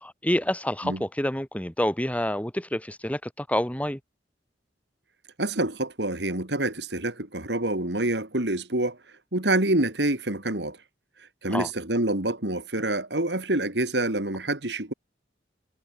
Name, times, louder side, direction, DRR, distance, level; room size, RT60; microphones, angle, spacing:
voice 1, 0.0-4.0 11.5-11.7, left 1 dB, 10° left, 3.3 m, -28 dB
voice 2, 5.4-9.0 9.3-10.8 11.4-14.9, right 1 dB, 70° right, 3.5 m, -27 dB
head